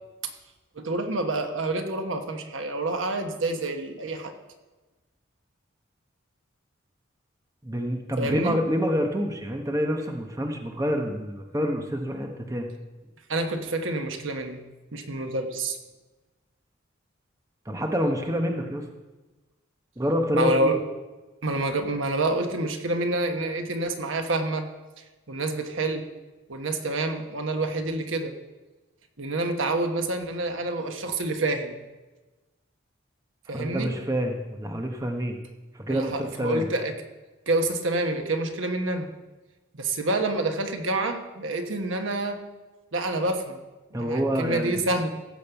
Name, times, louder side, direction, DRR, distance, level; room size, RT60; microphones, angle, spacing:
voice 1, 0.7-4.3 8.2-8.6 13.3-14.6 14.9-15.8 20.3-20.8 21.4-24.7 25.0-26.0 26.5-28.3 29.2-31.8 33.5-33.9 35.9-36.9 37.5-39.1 39.7-42.4 42.9-43.6 44.0-45.1, right 2 dB, 80° right, 5 dB, 1.2 m, -27 dB
voice 2, 7.6-12.7 17.6-18.9 20.0-20.7 33.5-35.4 35.7-36.7 43.9-44.8, equal, 15° right, 3 dB, 1.0 m, -27 dB
15.5 x 5.3 x 7.0 m, 1.2 s
head